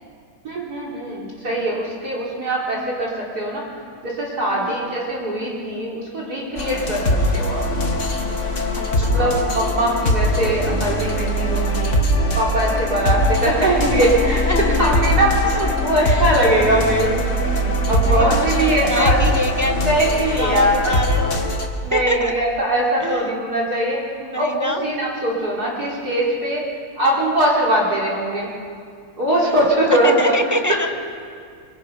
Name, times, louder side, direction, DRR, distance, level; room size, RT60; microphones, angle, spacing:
voice 1, 0.4-3.6 4.0-7.7 8.9-12.0 12.3-14.4 14.8-17.1 17.9-19.2 19.8-20.9 21.8-24.0 24.4-26.6 27.0-28.5 29.2-30.3, right 1 dB, 45° right, -3 dB, 4.4 m, -21 dB
sound 1, 6.6-21.7, left 1 dB, 40° left, 2.0 m, -21 dB
voice 2, 8.8-9.4 13.1-13.5 14.5-15.1 15.6-16.3 18.0-19.9 20.3-21.5 21.9-22.4 23.0-23.3 24.2-24.9 29.3-29.6 30.0-30.9, equal, 20° right, 5 dB, 0.4 m, -26 dB
26.0 x 25.0 x 5.6 m, 2.3 s
omnidirectional pair, 2.3 m